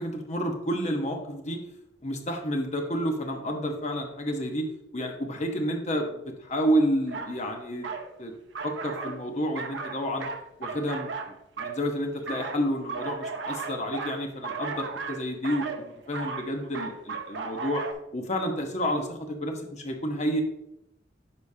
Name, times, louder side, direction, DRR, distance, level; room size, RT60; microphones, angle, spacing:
voice 1, 0.0-1.6 2.0-4.7 4.9-7.9 8.2-8.3 8.6-10.3 10.6-17.8 18.1-20.4, equal, 40° left, 3 dB, 1.0 m, -30 dB
sound 1, 7.1-7.3 7.8-8.1 8.5-9.2 9.5-11.8 12.3-17.9, right 4 dB, 75° right, 0.7 m, -35 dB
9.7 x 5.1 x 2.8 m, 0.83 s
head